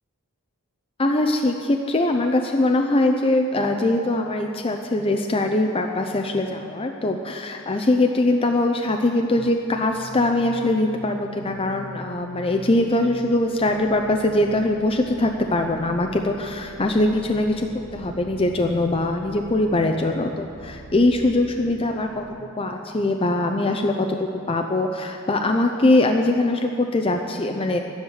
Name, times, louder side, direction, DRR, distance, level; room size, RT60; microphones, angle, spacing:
voice 1, 1.0-17.7 17.9-22.2 22.6-27.8, left 2 dB, 25° left, 3 dB, 0.5 m, -22 dB
sound 1, 9.4-22.4, right 1 dB, 60° right, 1.0 m, -42 dB
12.5 x 10.5 x 6.5 m, 2.4 s
head